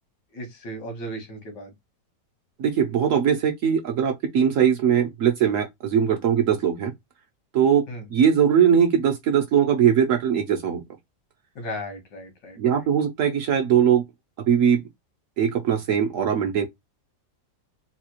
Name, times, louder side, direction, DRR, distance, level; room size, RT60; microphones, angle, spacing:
voice 1, 0.3-1.7 7.9-8.1 11.6-12.9, equal, 85° left, 1.9 m, -36 dB
voice 2, 2.6-6.9 7.5-10.8 12.6-14.0 14.5-14.8 15.4-16.7, right 8 dB, 60° right, 0.9 m, -20 dB
4.0 x 2.3 x 2.9 m
omnidirectional pair, 1.8 m